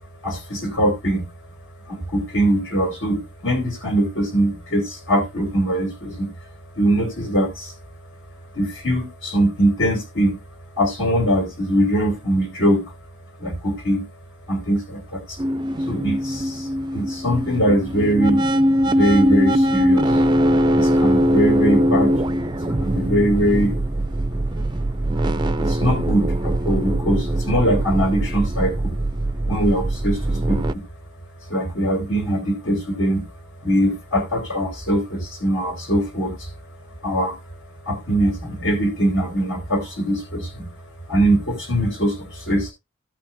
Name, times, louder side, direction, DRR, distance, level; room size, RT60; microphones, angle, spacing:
voice 1, 0.2-1.2 1.9-6.3 6.8-7.7 8.5-10.4 10.8-12.9 13.4-14.0 14.5-15.4 15.9-18.4 18.8-20.2 20.7-22.1 22.7-23.7 25.6-28.9 29.5-30.8 31.5-33.2 33.6-36.5 37.0-37.4 37.8-40.7 41.1-42.7, right 1 dB, 65° left, 1 dB, 3.4 m, -22 dB
sound 1, 15.4-30.7, equal, 20° right, 0.4 m, -21 dB
16.0 x 5.9 x 2.7 m, 0.21 s
head